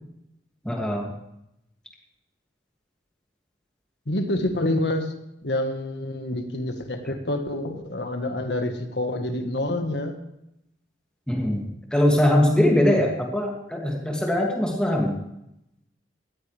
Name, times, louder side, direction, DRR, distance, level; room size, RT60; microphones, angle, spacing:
voice 1, 0.6-1.1 11.3-11.6 11.9-15.1, left 1 dB, 5° left, -1 dB, 2.4 m, -21 dB
voice 2, 4.1-5.1 5.4-10.1, left 1 dB, 70° left, 6 dB, 1.5 m, -27 dB
18.0 x 14.0 x 3.4 m, 0.83 s
head